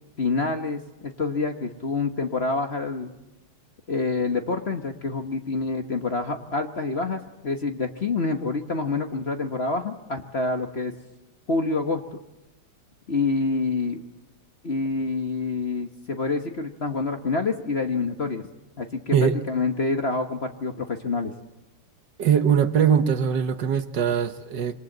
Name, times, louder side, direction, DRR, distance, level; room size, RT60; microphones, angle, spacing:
voice 1, 0.2-3.1 3.9-10.9 11.5-12.2 13.1-14.0 14.6-18.4 18.8-21.3, left 3 dB, 35° left, 5 dB, 1.3 m, -27 dB
voice 2, 22.2-24.7, right 8 dB, 60° right, 9 dB, 1.6 m, -21 dB
26.5 x 24.5 x 7.9 m, 1.0 s
omnidirectional pair, 2.2 m